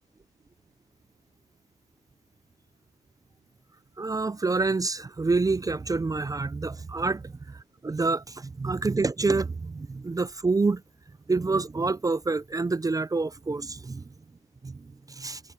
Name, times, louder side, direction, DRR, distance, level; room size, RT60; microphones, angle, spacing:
voice 1, 4.0-10.8 11.3-14.0 14.6-15.4, right 3 dB, 20° right, 0.5 m, -27 dB
cardioid pair, 90°, 20 cm